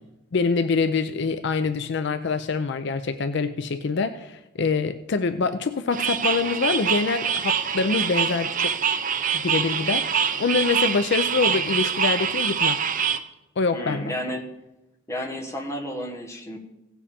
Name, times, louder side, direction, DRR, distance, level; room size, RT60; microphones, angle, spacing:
voice 1, 0.3-8.8 9.3-12.8 13.6-14.1, left 4 dB, 60° left, 10 dB, 0.5 m, -25 dB
sound 1, 5.9-13.2, right 7 dB, 45° right, 0.6 m, -25 dB
voice 2, 13.7-14.5 15.1-16.6, equal, 15° left, 1 dB, 1.4 m, -32 dB
16.5 x 7.1 x 4.3 m, 0.94 s
head